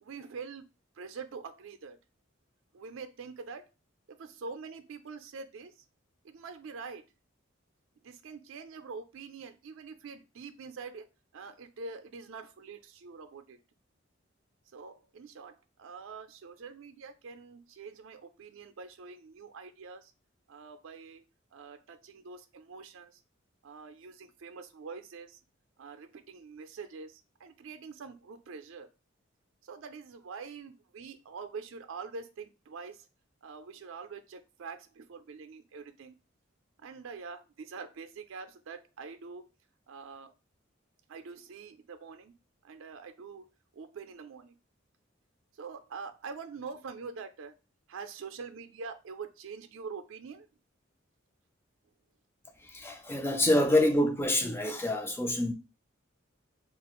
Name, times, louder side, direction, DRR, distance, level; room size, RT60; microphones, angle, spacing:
voice 1, 0.0-0.7 1.0-2.0 2.7-3.6 4.1-5.7 6.2-7.0 8.0-11.0 11.3-13.6 14.7-15.5 15.8-20.1 20.5-21.2 21.5-23.2 23.6-25.4 25.8-28.9 29.6-33.0 33.4-36.2 36.8-39.4 39.9-40.3 41.1-42.3 42.6-43.5 43.7-44.5 45.6-47.5 47.9-50.5, right 5 dB, 75° right, 0.4 m, -45 dB
voice 2, 52.7-55.5, left 1 dB, 10° left, 0.4 m, -26 dB
3.4 x 2.4 x 2.9 m
head